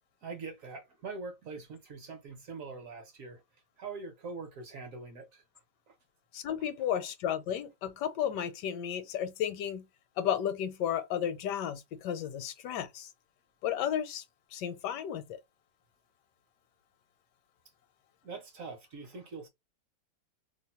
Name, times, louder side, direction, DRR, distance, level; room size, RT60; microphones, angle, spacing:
voice 1, 0.2-3.4 3.8-5.4 5.9-6.0 18.2-19.5, right 4 dB, 60° right, 1.0 m, -43 dB
voice 2, 6.3-9.8 10.2-13.1 13.6-14.2 14.5-15.4, left 9 dB, 80° left, 1.2 m, -33 dB
2.9 x 2.1 x 4.1 m
omnidirectional pair, 1.8 m